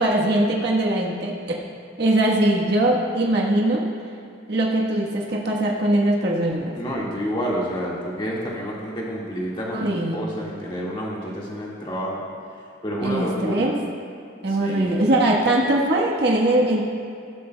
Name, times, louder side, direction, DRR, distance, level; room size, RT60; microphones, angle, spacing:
voice 1, 0.0-1.3 2.0-3.8 4.5-6.7 9.7-10.3 13.0-13.8 14.4-16.8, right 1 dB, 55° right, -3 dB, 1.2 m, -21 dB
voice 2, 6.7-9.8 10.1-12.2 12.8-13.7 14.6-15.0, equal, 25° left, -4 dB, 1.7 m, -29 dB
16.0 x 11.5 x 2.2 m, 2.5 s
head